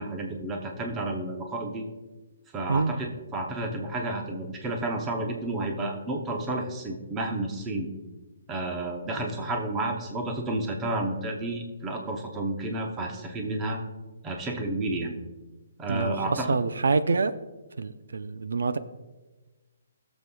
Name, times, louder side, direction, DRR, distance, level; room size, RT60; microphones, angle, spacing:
voice 1, 0.0-1.8 2.5-7.9 8.5-13.8 14.2-15.1 15.8-16.6, right 2 dB, 10° right, 2 dB, 0.7 m, -31 dB
voice 2, 15.9-17.3 17.8-18.8, right 4 dB, 80° right, 12 dB, 0.5 m, -26 dB
19.5 x 7.1 x 2.3 m, 1.2 s
hypercardioid pair, 180°, 0 cm